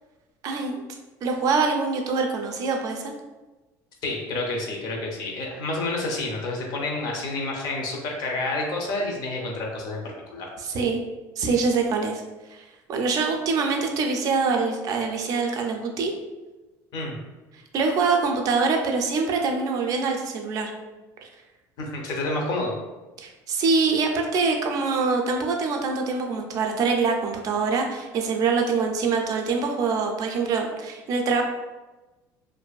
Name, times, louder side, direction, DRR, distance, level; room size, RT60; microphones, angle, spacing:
voice 1, 0.4-0.7 1.2-3.1 10.6-11.0 11.4-12.2 12.5-16.1 17.5-20.7 21.2-21.3 23.2-31.4, right 4 dB, 45° right, 2 dB, 0.4 m, -24 dB
voice 2, 4.0-10.5 16.9-17.2 21.8-22.8, left 2 dB, 55° left, 0 dB, 0.6 m, -29 dB
2.5 x 2.3 x 2.3 m, 1.2 s
cardioid pair, 135°, 8 cm